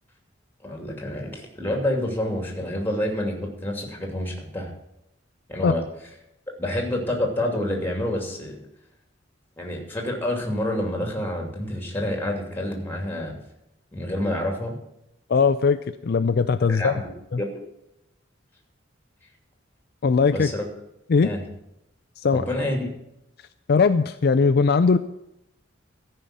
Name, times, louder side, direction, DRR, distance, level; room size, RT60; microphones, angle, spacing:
voice 1, 0.6-4.7 5.5-5.8 6.6-8.5 9.6-13.4 13.9-14.7 16.6-17.0 17.4-17.6 20.3-20.6 21.2-21.4 22.3-22.9, left 1 dB, 10° left, 1 dB, 2.7 m, -28 dB
voice 2, 15.3-16.9 17.3-17.4 20.0-20.5 21.1-21.3 22.2-22.4 23.7-25.0, left 5 dB, 55° left, 11 dB, 0.4 m, -19 dB
13.5 x 5.6 x 8.8 m, 0.82 s
head